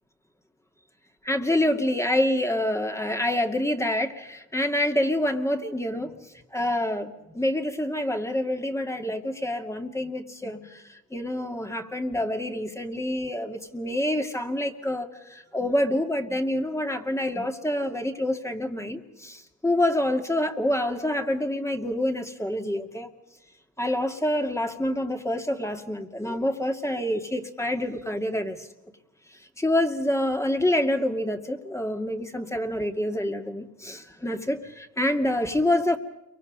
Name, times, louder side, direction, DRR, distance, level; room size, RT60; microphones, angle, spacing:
voice 1, 1.3-6.2 6.5-23.1 23.8-28.7 29.3-36.0, left 1 dB, 10° left, 4 dB, 2.3 m, -27 dB
30.0 x 24.0 x 5.4 m, 0.94 s
cardioid pair, 90°, 30 cm